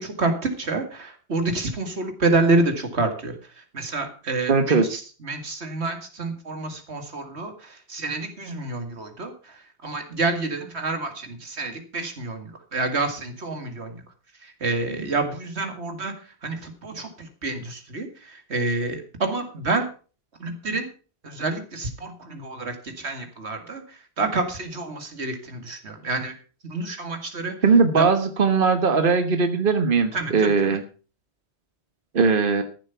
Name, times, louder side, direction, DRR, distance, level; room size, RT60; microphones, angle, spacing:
voice 1, 0.0-3.3 3.7-9.3 9.8-14.0 14.6-16.1 16.4-18.1 18.5-19.9 20.4-20.9 21.2-23.8 24.2-26.3 26.6-27.5 28.0-28.1 30.1-30.8, right 3 dB, 90° right, 6 dB, 2.4 m, -28 dB
voice 2, 4.5-5.0 15.0-15.1 27.6-30.8 32.1-32.6, right 4 dB, 55° right, 8 dB, 1.5 m, -19 dB
14.0 x 7.5 x 5.8 m, 0.37 s
omnidirectional pair, 1.1 m